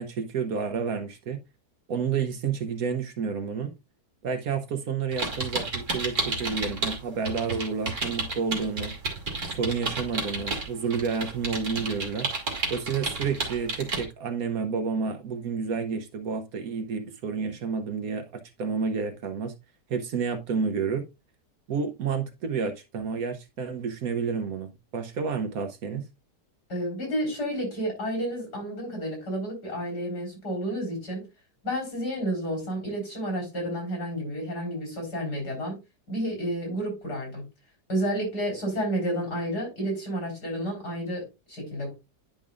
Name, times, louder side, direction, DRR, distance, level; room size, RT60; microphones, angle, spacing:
voice 1, 0.0-1.4 1.9-3.7 4.2-8.9 9.5-12.3 12.7-19.5 19.9-21.1 21.7-26.0, right 5 dB, 60° right, 1.2 m, -30 dB
sound 1, 5.1-7.0 7.2-14.0, right 3 dB, 45° right, 2.3 m, -31 dB
voice 2, 26.7-31.2 31.6-35.8 36.1-37.5 37.9-42.0, equal, 70° left, 4.7 m, -31 dB
10.5 x 5.4 x 2.4 m
omnidirectional pair, 1.8 m